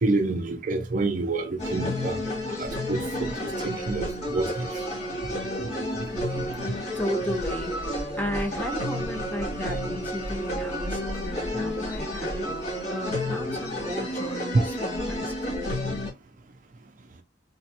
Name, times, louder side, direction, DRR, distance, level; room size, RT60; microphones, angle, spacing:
voice 1, 0.0-2.2 2.6-3.3 3.6-4.5 14.5-14.6, right 2 dB, 45° right, 0.5 m, -27 dB
sound 1, 1.6-16.1, equal, 35° left, 2.1 m, -31 dB
voice 2, 6.9-12.6 12.9-15.8, left 1 dB, 10° left, 0.9 m, -34 dB
4.1 x 3.0 x 2.8 m
head